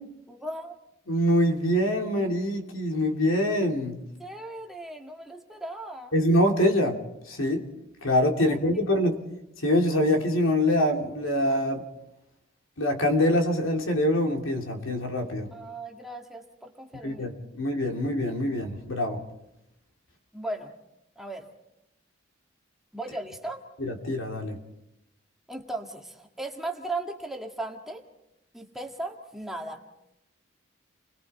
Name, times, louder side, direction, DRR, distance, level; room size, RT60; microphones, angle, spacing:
voice 1, 0.3-0.7 4.2-6.1 8.4-8.6 15.5-17.3 20.3-20.7 21.2-21.5 22.9-23.6 25.5-28.0 28.5-29.8, right 2 dB, ahead, 1 dB, 1.8 m, -37 dB
voice 2, 1.1-4.0 6.1-6.9 7.3-7.7 8.0-9.2 9.6-11.8 12.8-15.5 17.0-19.2 23.8-24.6, left 1 dB, 85° left, 3 dB, 2.9 m, -24 dB
30.0 x 21.5 x 4.3 m, 0.84 s
head